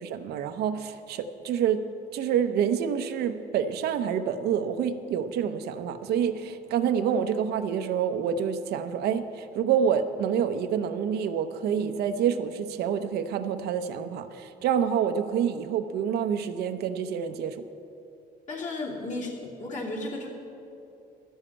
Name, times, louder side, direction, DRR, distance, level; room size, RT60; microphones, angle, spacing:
voice 1, 0.0-1.8 2.1-17.6, right 8 dB, 70° right, 8 dB, 0.7 m, -27 dB
voice 2, 18.5-20.3, left 2 dB, 45° left, -3 dB, 2.7 m, -34 dB
12.0 x 7.2 x 8.5 m, 2.7 s
cardioid pair, 110°, 17 cm